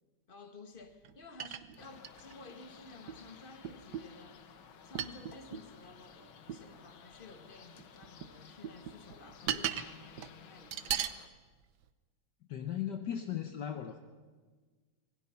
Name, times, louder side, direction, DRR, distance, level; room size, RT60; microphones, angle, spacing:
voice 1, 0.3-4.5 4.8-11.1, left 3 dB, 30° left, 1.7 m, -53 dB
sound 1, 1.0-1.1 1.4-2.5 3.1-3.2 3.6-4.2 4.9-5.7 6.5-6.6 7.8-8.3 8.6-9.9 10.2-10.3 10.7-11.2 11.8-11.9, right 10 dB, 65° right, 1.3 m, -37 dB
sound 2, 1.8-11.3, left 7 dB, 85° left, 2.0 m, -56 dB
voice 2, 12.5-14.0, left 9 dB, 65° left, 1.5 m, -37 dB
26.0 x 21.0 x 5.8 m
omnidirectional pair, 2.1 m